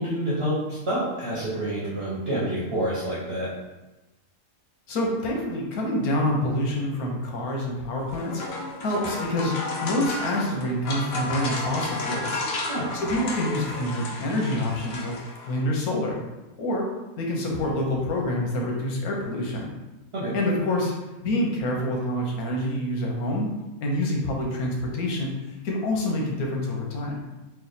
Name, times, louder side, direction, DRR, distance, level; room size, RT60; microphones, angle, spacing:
voice 1, 0.0-3.5 12.7-12.9 20.1-20.4, right 1 dB, 50° right, -7 dB, 1.0 m, -28 dB
voice 2, 4.9-9.5 9.8-12.4 12.9-15.2 15.4-16.2 16.6-16.9 17.2-19.7 20.3-20.9 21.2-23.5 23.8-25.3 25.6-27.2, left 1 dB, 85° left, -1 dB, 1.3 m, -27 dB
sound 1, 8.0-15.6, left 2 dB, 55° left, 0.7 m, -32 dB
3.3 x 2.5 x 4.0 m, 1.1 s
omnidirectional pair, 1.5 m